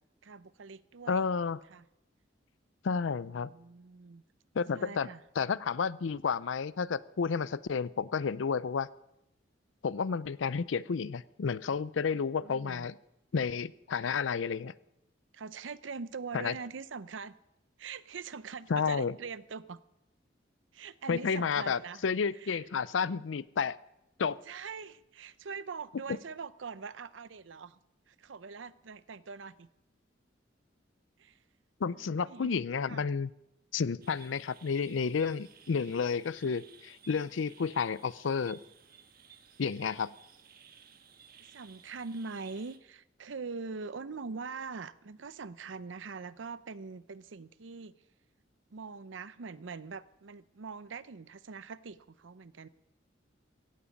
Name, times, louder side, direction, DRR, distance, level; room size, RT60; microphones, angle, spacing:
voice 1, 0.2-1.2 1.7-1.8 3.3-4.2 4.7-5.2 12.4-12.9 15.3-17.4 17.8-19.8 20.7-22.0 22.4-22.6 24.5-27.8 28.1-29.7 31.2-31.4 31.9-33.1 41.5-47.9 48.7-52.7, right 5 dB, 90° right, 16 dB, 0.6 m, -43 dB
voice 2, 1.1-1.6 2.8-3.5 4.5-5.1 5.4-8.9 9.8-12.9 13.3-14.7 16.3-16.5 18.7-19.2 21.1-23.8 24.2-24.4 31.8-33.3 33.7-38.6 39.6-40.1, left 5 dB, 85° left, 19 dB, 0.5 m, -31 dB
sound 1, 34.0-42.8, right 7 dB, 50° right, 1.4 m, -57 dB
16.0 x 15.5 x 5.2 m, 0.87 s
head